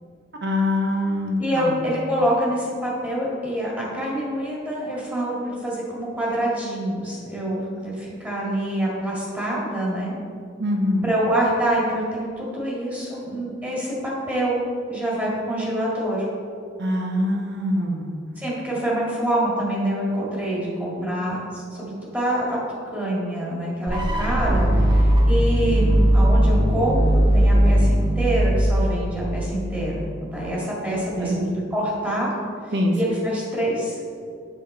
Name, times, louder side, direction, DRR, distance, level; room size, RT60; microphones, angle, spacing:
voice 1, 0.4-1.8 10.6-11.1 16.8-18.1 31.1-31.5 32.7-33.0, left 1 dB, 65° right, 1 dB, 1.1 m, -24 dB
voice 2, 1.4-10.1 11.0-14.6 14.9-16.3 18.4-22.6 22.9-32.3 32.9-34.0, right 1 dB, 10° right, -6 dB, 2.0 m, -26 dB
sound 1, 23.9-29.8, right 1 dB, 25° right, 0.9 m, -19 dB
7.2 x 6.0 x 4.2 m, 2.3 s
head